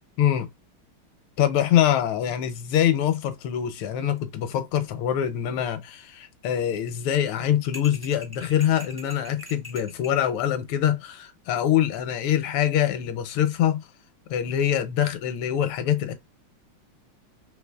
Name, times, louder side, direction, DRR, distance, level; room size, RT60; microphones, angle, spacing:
voice 1, 0.2-0.5 1.4-13.8 14.3-16.1, left 10 dB, 85° left, 1.5 m, -24 dB
sound 1, 7.7-10.2, left 1 dB, 20° right, 0.6 m, -43 dB
3.8 x 3.0 x 2.2 m
omnidirectional pair, 2.3 m